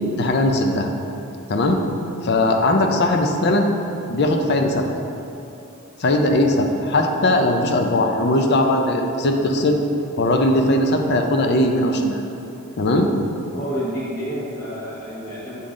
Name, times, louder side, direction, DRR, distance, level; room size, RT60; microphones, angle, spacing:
voice 1, 0.2-0.9 1.5-1.8 2.2-3.7 4.1-4.9 6.0-9.8 10.2-12.2 12.8-13.1, left 1 dB, 55° left, 4 dB, 0.5 m, -19 dB
voice 2, 13.5-15.6, equal, 30° left, -10 dB, 1.1 m, -30 dB
7.4 x 3.9 x 3.7 m, 2.8 s
head